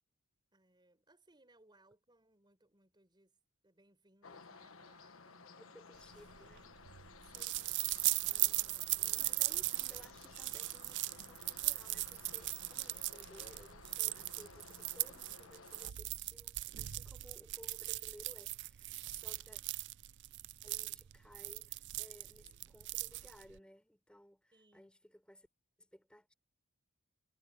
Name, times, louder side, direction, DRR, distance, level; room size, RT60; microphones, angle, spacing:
voice 1, 0.5-3.4 3.6-5.9 7.3-7.5 8.3-9.3 24.5-24.9, right 1 dB, 20° right, 5.1 m, -67 dB
sound 1, 4.2-15.9, left 4 dB, 70° left, 1.4 m, -56 dB
voice 2, 5.6-6.7 7.3-7.8 9.2-19.6 20.6-25.5 25.8-26.3, equal, 5° left, 6.9 m, -59 dB
sound 2, 6.1-23.6, right 19 dB, 55° right, 0.4 m, -38 dB
head